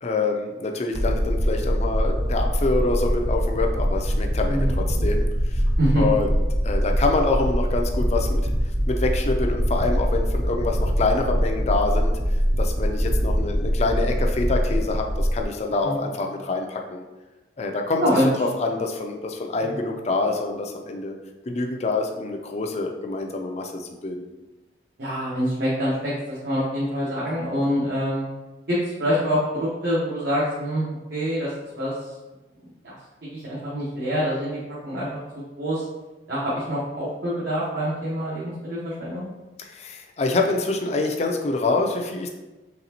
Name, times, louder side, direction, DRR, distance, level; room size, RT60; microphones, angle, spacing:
voice 1, 0.0-5.6 6.0-8.4 8.9-12.1 12.6-17.0 17.6-18.0 18.5-21.1 21.5-24.3 39.6-42.3, left 3 dB, 40° left, 3 dB, 0.4 m, -26 dB
sound 1, 0.9-15.4, equal, 30° right, 0.5 m, -23 dB
voice 2, 25.0-28.2 28.7-32.1 32.6-32.7 33.2-35.2 35.6-35.8 36.3-39.3, equal, 65° right, -9 dB, 1.1 m, -26 dB
4.1 x 3.3 x 2.8 m, 1.1 s
head